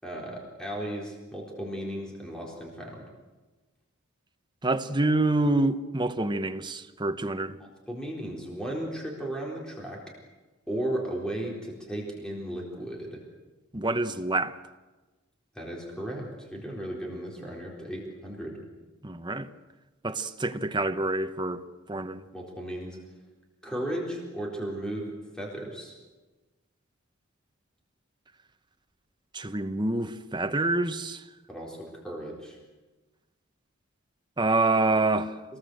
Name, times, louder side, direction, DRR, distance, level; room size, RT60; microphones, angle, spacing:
voice 1, 0.0-3.1 7.6-10.0 10.7-13.2 15.5-18.6 22.3-23.0 23.6-26.0 31.5-32.6, right 1 dB, 5° left, 4.1 m, -35 dB
voice 2, 4.6-7.6 13.7-14.6 19.0-19.5 20.0-21.6 21.9-22.2 29.3-31.2 34.4-35.3, right 2 dB, 20° right, 1.1 m, -27 dB
27.0 x 19.5 x 7.9 m
head